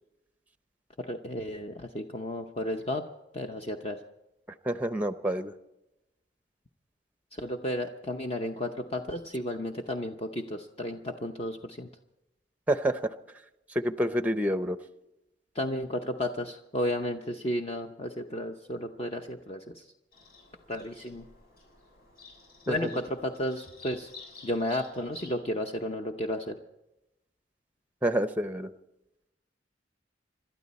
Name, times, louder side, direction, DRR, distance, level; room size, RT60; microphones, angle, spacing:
voice 1, 1.0-3.1 3.3-4.0 7.3-11.9 15.5-19.9 20.7-21.3 22.7-24.1 24.4-26.6, left 1 dB, 35° left, 4 dB, 0.8 m, -33 dB
voice 2, 4.6-5.5 12.7-13.0 13.7-14.8 28.0-28.7, equal, 10° right, 10 dB, 0.6 m, -27 dB
Bird vocalization bird call bird song, 20.1-25.4, left 4 dB, 55° left, 7.2 m, -52 dB
27.5 x 12.5 x 4.2 m, 0.93 s
head